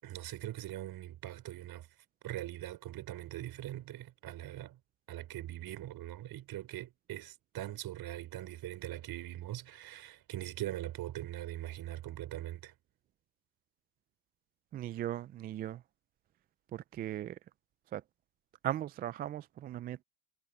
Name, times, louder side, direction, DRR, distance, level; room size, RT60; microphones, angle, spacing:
voice 1, 0.0-1.9 2.2-4.8 5.1-12.7, right 14 dB, 45° right, 4.8 m, -42 dB
voice 2, 14.7-15.8 16.7-17.4 17.9-18.0 18.6-20.0, right 12 dB, 20° right, 0.3 m, -38 dB
hypercardioid pair, 95°, 50 cm